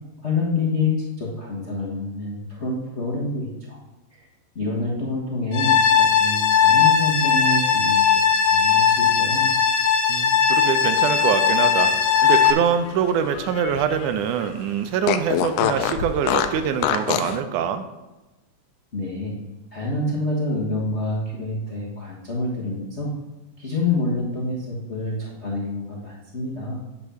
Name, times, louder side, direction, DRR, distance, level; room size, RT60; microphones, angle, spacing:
voice 1, 0.2-3.8 4.1-4.3 4.5-9.5 18.9-19.4 19.7-23.1 23.6-26.8, left 2 dB, 50° left, -4 dB, 0.7 m, -27 dB
sound 1, 5.5-12.5, left 7 dB, 70° left, 1.5 m, -18 dB
voice 2, 10.1-17.8, right 8 dB, 80° right, 9 dB, 2.1 m, -24 dB
Fart, 12.1-14.1 14.4-14.5 15.0-17.4, left 9 dB, 90° left, 2.2 m, -25 dB
9.7 x 4.4 x 6.9 m, 1.1 s
omnidirectional pair, 3.6 m